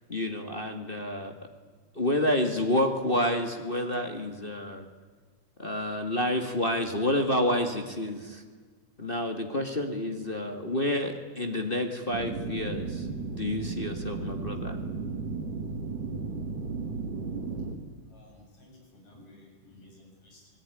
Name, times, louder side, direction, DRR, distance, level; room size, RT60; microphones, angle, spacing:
voice 1, 0.1-1.3 2.0-4.9 5.6-8.4 9.0-13.1 13.3-14.8, left 1 dB, 20° left, 4 dB, 1.7 m, -29 dB
sound 1, 12.1-17.8, right 4 dB, 80° right, 4.0 m, -34 dB
voice 2, 18.1-20.5, left 1 dB, 60° left, 0 dB, 8.8 m, -55 dB
27.5 x 19.0 x 10.0 m, 1.5 s
omnidirectional pair, 3.5 m